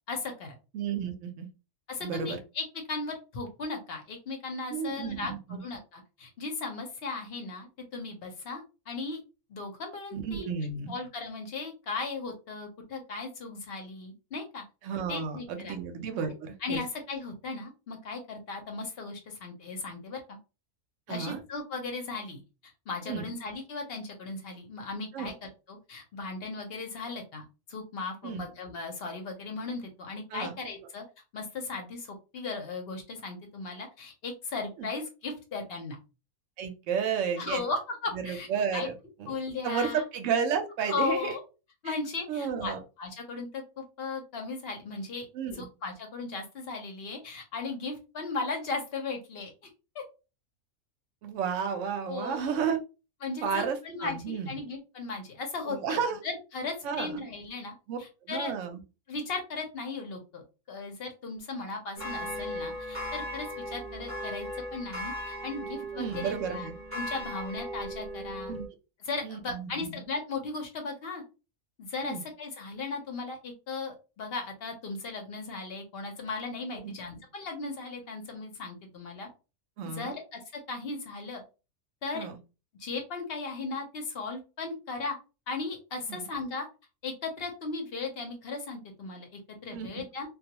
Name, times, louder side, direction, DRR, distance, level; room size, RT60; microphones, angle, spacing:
voice 1, 0.1-0.5 1.9-5.3 5.6-9.2 9.5-10.5 10.9-14.6 15.1-15.8 16.6-20.4 21.1-22.4 22.9-31.0 31.3-36.0 37.4-38.5 38.7-38.9 39.3-40.0 40.9-41.4 41.8-45.3 45.5-49.5 49.9-50.0 52.1-52.6 53.2-58.5 59.1-60.4 60.7-66.7 66.9-68.5 69.1-71.2 71.8-79.3 79.9-81.4 82.0-82.3 82.8-85.2 85.5-86.7 87.0-90.3, left 3 dB, 55° left, 3 dB, 0.7 m, -37 dB
voice 2, 0.7-1.5 2.0-2.4 4.7-5.6 10.1-10.9 14.8-16.8 21.1-21.4 23.1-23.3 25.1-25.3 28.2-28.4 30.3-30.5 34.8-34.9 36.6-37.6 38.1-38.9 39.2-39.3 39.6-41.3 41.8-41.9 42.3-42.8 45.3-45.6 51.2-52.8 53.4-54.5 55.6-56.2 56.8-57.2 57.9-58.8 65.9-66.7 68.5-68.7 69.2-70.0 72.0-72.2 76.8-76.9 79.8-80.2 82.1-82.4 86.1-86.3 89.7-90.0, right 6 dB, 65° right, 6 dB, 0.9 m, -32 dB
sound 1, 61.9-68.6, equal, 10° right, 0.8 m, -37 dB
2.3 x 2.3 x 2.8 m, 0.30 s
omnidirectional pair, 1.6 m